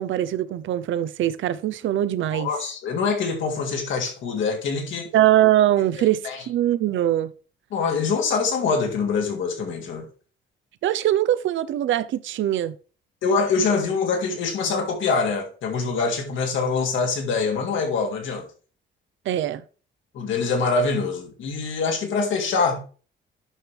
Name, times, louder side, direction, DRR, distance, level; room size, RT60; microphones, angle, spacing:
voice 1, 0.0-2.5 5.1-6.2 6.5-7.3 10.8-12.7 19.3-19.6, right 12 dB, 75° right, 0.7 m, -22 dB
voice 2, 2.3-5.1 6.2-6.4 7.7-10.1 13.2-18.5 20.1-22.8, left 4 dB, 75° left, 2.8 m, -24 dB
10.0 x 6.0 x 3.4 m
cardioid pair, 90°, 20 cm